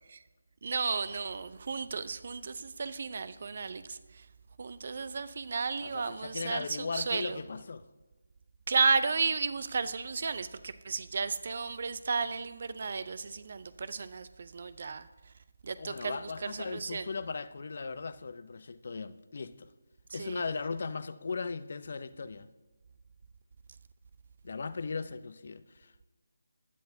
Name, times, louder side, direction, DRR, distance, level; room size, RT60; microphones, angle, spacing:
voice 1, 0.6-4.0 4.6-7.4 8.7-15.1 15.6-17.1 20.1-20.4, right 5 dB, 50° right, 0.5 m, -33 dB
voice 2, 5.8-7.8 15.8-19.7 20.1-22.5 24.4-26.1, left 4 dB, 50° left, 0.6 m, -38 dB
15.5 x 10.5 x 2.7 m
figure-of-eight pair, 155°, 0 cm